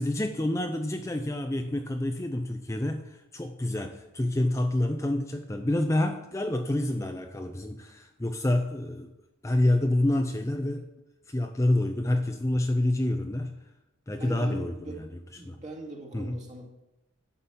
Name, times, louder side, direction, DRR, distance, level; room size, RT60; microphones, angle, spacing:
voice 1, 0.0-9.1 9.4-10.9 11.3-13.5 14.1-15.1 15.4-15.6 16.1-16.4, left 1 dB, 15° left, 6 dB, 0.5 m, -28 dB
voice 2, 14.2-15.0 15.4-16.8, right 2 dB, 35° right, 0 dB, 2.1 m, -41 dB
11.5 x 5.3 x 7.0 m, 0.93 s
head